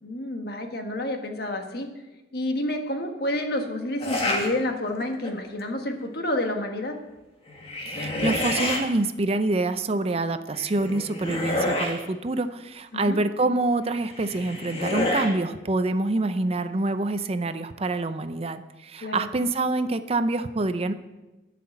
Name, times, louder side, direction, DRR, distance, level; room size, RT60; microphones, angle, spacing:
voice 1, 0.0-1.9 2.3-7.0 12.9-13.2 19.0-19.3, left 1 dB, 60° left, 4 dB, 1.5 m, -29 dB
sound 1, 4.0-4.5 5.0-5.5 7.5-8.8 10.5-12.0 14.0-15.3, left 1 dB, 35° left, 1.8 m, -28 dB
voice 2, 7.9-20.9, right 2 dB, 35° right, 10 dB, 0.5 m, -26 dB
12.0 x 5.9 x 8.5 m, 1.1 s
head